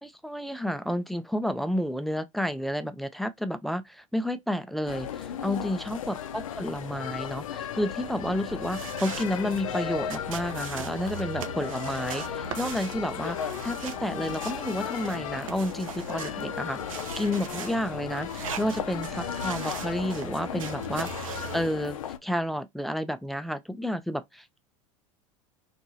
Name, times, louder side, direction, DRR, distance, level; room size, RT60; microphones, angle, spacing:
voice 1, 0.0-24.6, equal, ahead, 0.3 m, -31 dB
sound 1, 4.9-22.2, left 9 dB, 80° left, 0.4 m, -35 dB
sound 2, 8.0-21.7, right 7 dB, 80° right, 0.5 m, -40 dB
2.6 x 2.5 x 2.6 m
hypercardioid pair, 85°, 17 cm